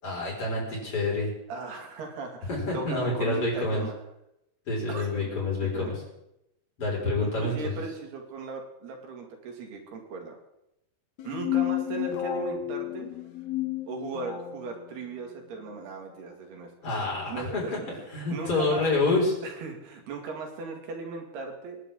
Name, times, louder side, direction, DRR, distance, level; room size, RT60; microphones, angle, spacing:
voice 1, 0.0-1.3 2.5-3.9 4.7-5.9 6.8-7.8 16.8-19.4, left 2 dB, 35° left, -5 dB, 6.4 m, -28 dB
voice 2, 1.5-3.9 4.9-5.3 5.6-6.0 7.2-10.4 11.2-13.1 13.9-16.7 17.3-17.8 18.3-18.8 19.4-21.8, right 4 dB, 90° right, 2 dB, 4.4 m, -37 dB
sound 1, 11.2-14.6, left 12 dB, 65° left, 1.8 m, -31 dB
28.5 x 10.5 x 3.8 m, 0.85 s
omnidirectional pair, 4.5 m